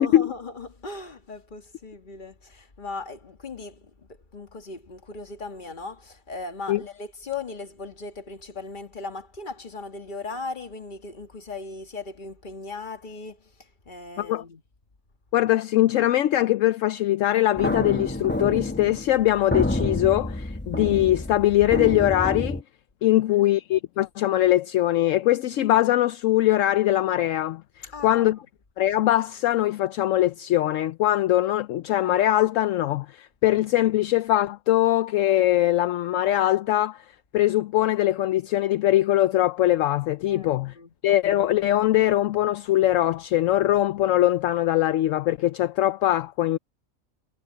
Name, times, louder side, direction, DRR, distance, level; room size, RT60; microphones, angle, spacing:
voice 1, 0.0-14.6 23.1-23.4 27.9-28.3 40.3-40.9, left 3 dB, 35° left, 1.7 m, -38 dB
voice 2, 15.3-22.6 23.0-28.4 28.8-37.0 37.3-40.7 41.0-46.6, left 14 dB, 75° left, 0.9 m, -22 dB
sound 1, 17.6-22.6, left 1 dB, 10° left, 0.8 m, -28 dB
omnidirectional pair, 1.4 m